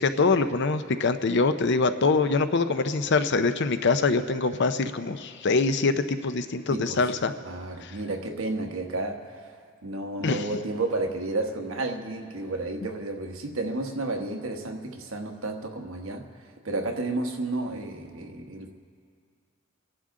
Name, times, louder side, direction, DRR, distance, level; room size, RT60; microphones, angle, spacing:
voice 1, 0.0-7.3 7.8-7.9 10.2-10.5, left 3 dB, 60° left, 10 dB, 0.6 m, -24 dB
voice 2, 7.4-9.5 9.8-16.2 16.6-18.7, right 2 dB, 90° right, 3 dB, 1.3 m, -31 dB
27.5 x 11.0 x 3.8 m, 2.1 s
head